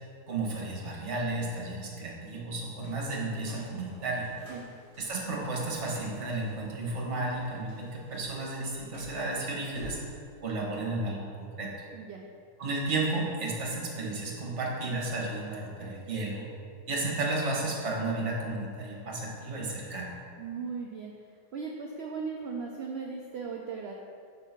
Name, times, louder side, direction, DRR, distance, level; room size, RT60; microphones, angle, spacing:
voice 1, 0.3-4.3 5.0-10.0 10.4-11.7 12.6-16.5 16.9-20.1, right 2 dB, 50° right, -3 dB, 1.4 m, -33 dB
sound 1, 2.8-10.0, equal, 85° left, 2.4 m, -51 dB
voice 2, 11.9-12.2 20.4-21.1 21.5-23.9, right 5 dB, 90° right, 0 dB, 0.5 m, -37 dB
6.3 x 3.5 x 5.8 m, 2.3 s
omnidirectional pair, 1.7 m